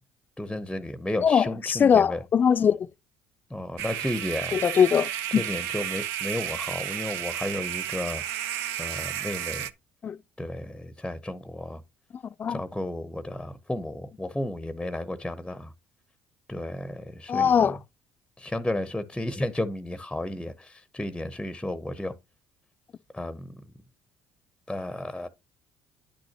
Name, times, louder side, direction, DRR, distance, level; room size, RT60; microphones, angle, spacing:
voice 1, 0.4-2.2 3.5-4.6 5.4-8.2 8.8-9.7 10.4-11.8 12.5-15.7 16.5-17.7 18.4-22.1 23.1-23.6 24.7-25.3, left 1 dB, 5° left, 0.8 m, -33 dB
voice 2, 1.2-2.9 4.5-5.6 10.0-10.2 12.4-12.6 17.3-17.8, left 7 dB, 40° left, 0.5 m, -22 dB
sound 1, 3.8-9.7, right 11 dB, 75° right, 0.6 m, -32 dB
10.0 x 6.2 x 2.9 m
hypercardioid pair, 60°, 5 cm